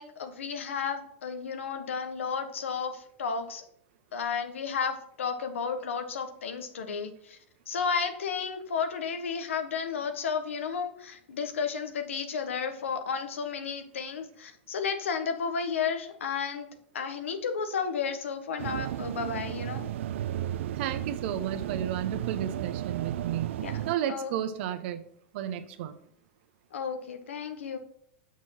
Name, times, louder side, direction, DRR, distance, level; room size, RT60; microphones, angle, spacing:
voice 1, 0.0-3.6 4.1-7.4 7.7-16.7 16.9-19.9 23.6-23.7 24.1-24.3 26.7-27.8, left 6 dB, 90° left, 7 dB, 1.4 m, -32 dB
sound 1, 18.6-24.0, right 12 dB, 75° right, 0.3 m, -34 dB
voice 2, 20.7-23.5 23.9-25.0 25.3-25.9, right 10 dB, 60° right, 10 dB, 1.0 m, -32 dB
6.3 x 6.2 x 5.8 m, 0.68 s
hypercardioid pair, 125°, 7 cm